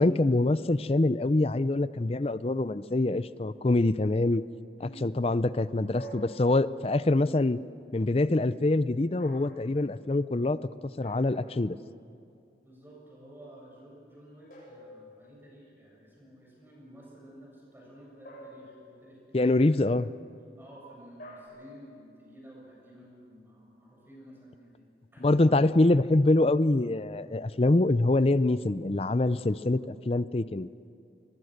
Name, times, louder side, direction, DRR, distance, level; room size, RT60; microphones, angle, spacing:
voice 1, 0.0-4.4 5.0-7.6 7.9-10.6 11.0-11.8 19.3-20.1 25.2-30.7, left 2 dB, 35° left, 15 dB, 0.5 m, -25 dB
sound 1, 5.9-7.0 9.2-9.7 11.0-11.9 14.5-15.6 18.3-19.2 21.2-21.5, equal, 50° left, 7.7 m, -48 dB
voice 2, 12.6-20.0 20.6-24.8 25.1-25.6, right 1 dB, 10° right, -3 dB, 7.5 m, -52 dB
23.5 x 22.5 x 6.6 m, 2.5 s
head